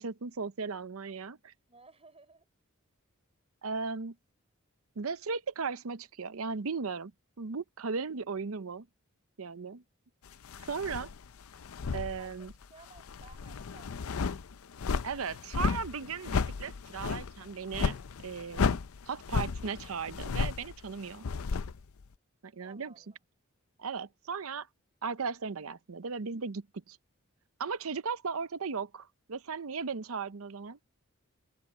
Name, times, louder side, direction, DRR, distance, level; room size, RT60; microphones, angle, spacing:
voice 1, 0.0-1.5 3.6-4.1 5.0-7.1 7.4-8.9 9.4-9.8 10.6-11.1 11.9-12.5 15.0-18.8 19.1-21.3 22.4-22.9 23.8-24.7 25.0-27.0 27.6-30.8, right 5 dB, 75° right, 0.7 m, -36 dB
voice 2, 1.7-2.5 12.2-14.4 22.6-23.2, right 3 dB, 30° right, 4.3 m, -57 dB
sound 1, 10.4-12.6 13.0-22.0, left 5 dB, 75° left, 0.5 m, -34 dB
head